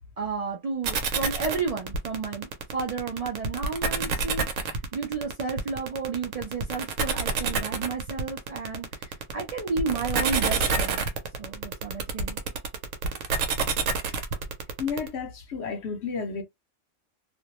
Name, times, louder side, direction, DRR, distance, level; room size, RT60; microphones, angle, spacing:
voice 1, 0.2-11.1 11.4-12.4, right 4 dB, 65° right, 0.3 m, -32 dB
sound 1, 0.8-15.1, right 5 dB, 85° right, 1.0 m, -28 dB
voice 2, 14.8-16.4, left 5 dB, 65° left, 0.8 m, -31 dB
2.5 x 2.1 x 2.8 m
omnidirectional pair, 1.3 m